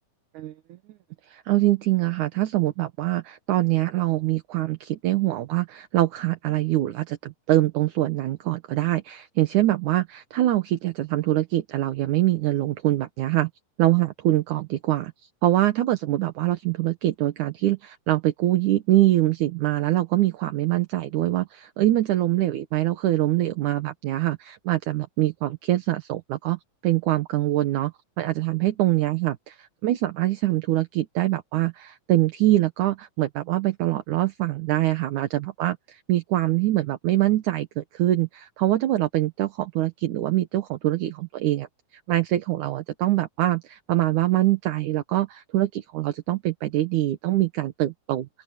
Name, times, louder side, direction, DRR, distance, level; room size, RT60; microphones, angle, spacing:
voice 1, 1.3-13.5 13.8-15.1 15.4-41.7 42.1-48.3, right 15 dB, 70° right, 2.4 m, -24 dB
open air
omnidirectional pair, 4.0 m